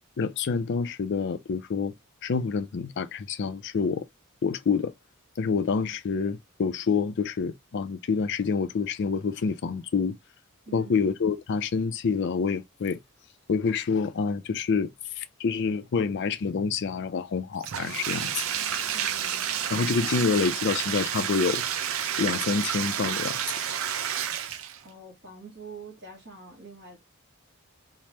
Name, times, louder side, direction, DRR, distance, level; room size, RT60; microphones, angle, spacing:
voice 1, 0.0-1.9 2.2-4.1 4.4-4.9 5.4-10.2 10.7-13.0 13.5-18.5 19.7-21.6 22.2-23.4, left 5 dB, 50° left, 0.4 m, -27 dB
Bathtub (filling or washing), 17.6-24.9, right 9 dB, 65° right, 0.5 m, -30 dB
voice 2, 18.9-19.8 24.8-27.0, right 4 dB, 50° right, 1.1 m, -46 dB
3.2 x 2.1 x 2.7 m
head